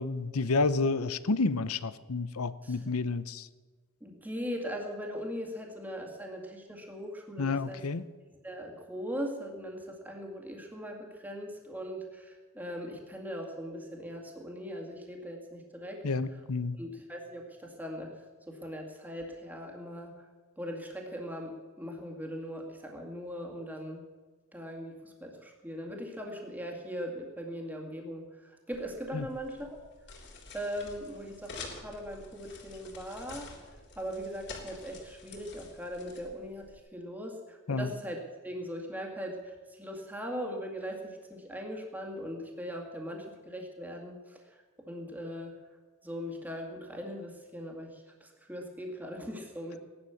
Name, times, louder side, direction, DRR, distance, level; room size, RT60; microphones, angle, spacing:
voice 1, 0.0-3.5 7.4-8.0 16.0-16.8 29.1-29.3 37.7-37.9, left 3 dB, 90° left, 15 dB, 0.8 m, -30 dB
voice 2, 4.0-7.8 8.4-16.0 16.8-18.2 18.5-20.2 20.6-24.0 24.5-29.8 30.5-33.5 34.0-45.6 46.0-49.8, equal, 10° right, 1 dB, 2.1 m, -40 dB
sound 1, 28.7-36.8, left 3 dB, 50° left, 3.8 m, -48 dB
17.0 x 11.5 x 7.1 m, 1.4 s
head